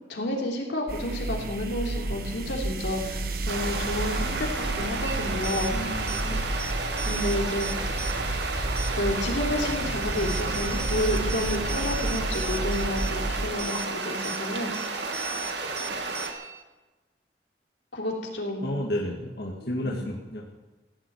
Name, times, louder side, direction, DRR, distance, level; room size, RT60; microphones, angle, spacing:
voice 1, 0.1-5.9 7.0-7.7 8.9-14.7 17.9-18.7 19.8-19.9, left 1 dB, 90° left, -1 dB, 3.4 m, -30 dB
sound 1, 0.9-13.5, right 2 dB, 55° right, 1.4 m, -31 dB
sound 2, 3.5-16.3, right 3 dB, 80° right, 2.1 m, -32 dB
sound 3, 5.0-16.6, right 4 dB, 15° right, 0.7 m, -39 dB
voice 2, 5.7-6.5 18.6-20.5, left 1 dB, 60° left, -1 dB, 2.0 m, -32 dB
16.5 x 7.8 x 9.4 m, 1.2 s
head